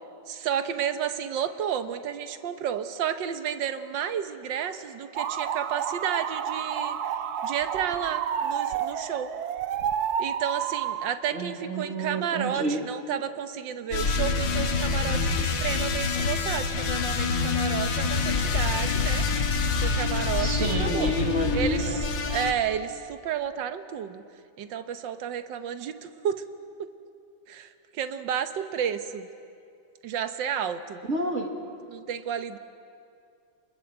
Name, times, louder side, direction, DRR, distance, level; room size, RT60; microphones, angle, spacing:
voice 1, 0.3-7.0 7.4-9.3 10.2-19.3 19.8-21.1 21.5-24.2 24.6-26.4 26.8-26.9 27.5-29.3 30.0-31.0 31.9-32.6, right 8 dB, 80° right, 10 dB, 1.7 m, -31 dB
sound 1, 5.2-11.1, right 8 dB, 60° right, 1.2 m, -30 dB
voice 2, 11.3-12.8 20.4-22.0 31.1-31.5, right 1 dB, 40° right, 2 dB, 2.5 m, -29 dB
sound 2, 13.9-22.5, left 4 dB, 75° left, 2.1 m, -26 dB
27.5 x 20.5 x 7.9 m, 2.5 s
omnidirectional pair, 2.0 m